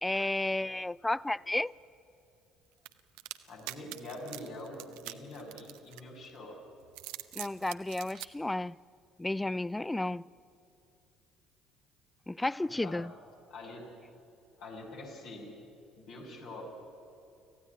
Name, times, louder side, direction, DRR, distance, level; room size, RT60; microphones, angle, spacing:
voice 1, 0.0-1.7 7.4-8.8 9.2-10.2 12.3-13.1, left 2 dB, 10° left, 0.4 m, -32 dB
sound 1, 2.9-6.3 6.8-8.3, right 18 dB, 70° right, 0.8 m, -44 dB
voice 2, 3.5-6.6 12.6-13.0 13.5-13.9 14.6-15.5 16.0-16.6, left 2 dB, 60° left, 6.2 m, -45 dB
25.5 x 15.5 x 9.8 m
figure-of-eight pair, 55°, 0 cm